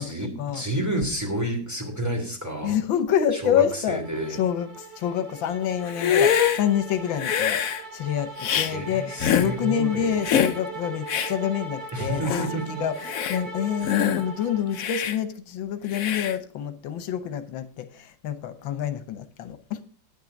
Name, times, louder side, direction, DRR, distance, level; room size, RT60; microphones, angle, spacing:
voice 1, 0.0-2.8 3.3-4.4 8.5-10.2 11.9-12.8, right 1 dB, 10° right, -1 dB, 3.0 m, -30 dB
voice 2, 2.6-4.0 4.3-7.6 7.9-12.5 12.8-19.8, left 9 dB, 80° left, 10 dB, 1.7 m, -27 dB
sound 1, 3.7-15.0, right 3 dB, 70° right, 2.5 m, -40 dB
Hiss, 5.9-6.6 7.2-7.8 8.4-8.7 9.2-9.5 10.2-10.6 11.1-11.3 11.9-12.0 12.2-12.5 13.0-13.4 13.8-14.2 14.7-15.2 15.9-16.4, left 8 dB, 60° left, 1.0 m, -24 dB
10.0 x 9.2 x 5.2 m, 0.42 s
omnidirectional pair, 2.1 m